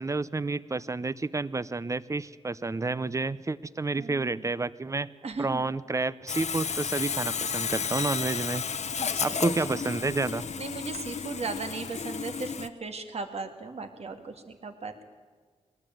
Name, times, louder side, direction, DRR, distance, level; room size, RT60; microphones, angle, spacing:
voice 1, 0.0-5.1 5.4-8.6 9.2-10.5, right 3 dB, 25° right, 17 dB, 0.7 m, -30 dB
voice 2, 4.0-4.5 5.2-5.6 9.0-9.4 9.7-9.8 10.6-15.0, right 4 dB, 60° right, 6 dB, 2.4 m, -37 dB
Sawing, 6.3-12.7, left 6 dB, 70° left, 0.9 m, -32 dB
21.5 x 19.5 x 9.2 m, 1.5 s
wide cardioid pair, 125°, 12 cm